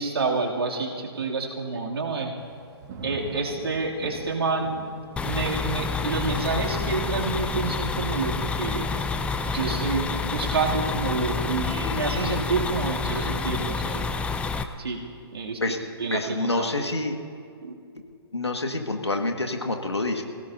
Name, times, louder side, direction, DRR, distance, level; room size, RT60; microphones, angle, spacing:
voice 1, 0.0-2.3 3.0-4.8 5.2-9.0 9.5-14.0 14.8-15.0 15.3-15.6 16.0-16.7 17.6-17.7, right 4 dB, 70° right, -1 dB, 2.8 m, -28 dB
Thunder / Rain, 2.4-13.3 13.7-14.2, right 4 dB, 40° right, 2.0 m, -46 dB
sound 1, 5.2-14.6, left 4 dB, 10° left, 0.5 m, -28 dB
Vehicle horn car horn honking, 11.6-12.4, left 3 dB, 15° right, 4.7 m, -35 dB
voice 2, 16.1-17.2 18.3-20.2, left 2 dB, 90° left, 4 dB, 1.8 m, -27 dB
26.5 x 17.5 x 2.8 m, 2.3 s
figure-of-eight pair, 125°, 14 cm